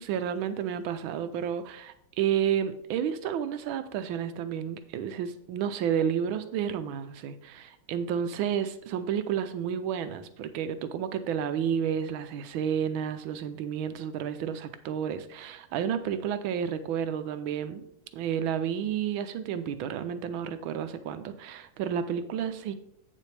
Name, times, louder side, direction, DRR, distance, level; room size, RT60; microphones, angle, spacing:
voice 1, 0.0-17.9 18.1-22.7, right 8 dB, 75° right, 11 dB, 1.3 m, -31 dB
8.4 x 7.4 x 3.3 m, 0.71 s
omnidirectional pair, 2.4 m